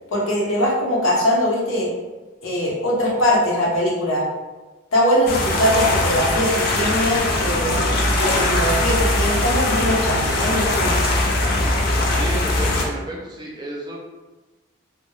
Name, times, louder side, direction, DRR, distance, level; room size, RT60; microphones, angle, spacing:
voice 1, 0.1-1.9 2.4-4.2 4.9-11.1, equal, 90° left, -4 dB, 0.7 m, -21 dB
Waves gently breaking on lakeshore, 5.3-12.8, left 2 dB, 45° left, 0.4 m, -20 dB
voice 2, 12.1-14.0, right 1 dB, 20° right, -3 dB, 0.4 m, -32 dB
2.2 x 2.0 x 3.0 m, 1.2 s
head